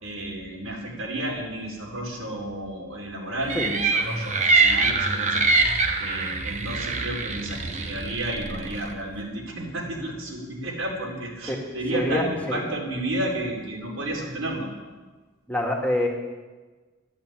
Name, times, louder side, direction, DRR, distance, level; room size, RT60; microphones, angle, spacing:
voice 1, 0.0-5.6 6.0-14.7, right 1 dB, 90° right, -2 dB, 4.5 m, -32 dB
sound 1, 3.5-8.9, right 3 dB, 35° right, 1.2 m, -24 dB
voice 2, 11.9-12.6 15.5-16.1, left 1 dB, 5° left, 0 dB, 2.0 m, -25 dB
13.0 x 11.0 x 9.1 m, 1.3 s
head